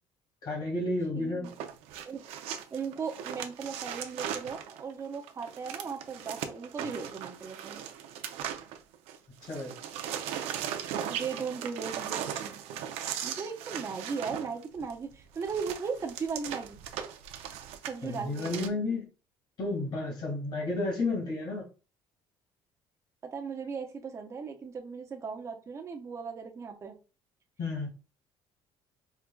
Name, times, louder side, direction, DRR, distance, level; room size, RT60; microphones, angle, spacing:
voice 1, 0.4-1.5 9.5-9.7 18.0-19.1 19.6-21.6 27.6-27.9, left 2 dB, 50° left, 1.8 m, -31 dB
voice 2, 1.1-1.5 2.0-2.2 2.7-7.8 11.1-12.6 13.2-16.8 17.8-18.6 23.3-26.9, right 5 dB, 30° right, 0.8 m, -37 dB
sound 1, 1.4-9.2 9.4-18.7, right 9 dB, 85° right, 0.5 m, -38 dB
4.5 x 2.4 x 2.2 m
cardioid pair, 135°, 10 cm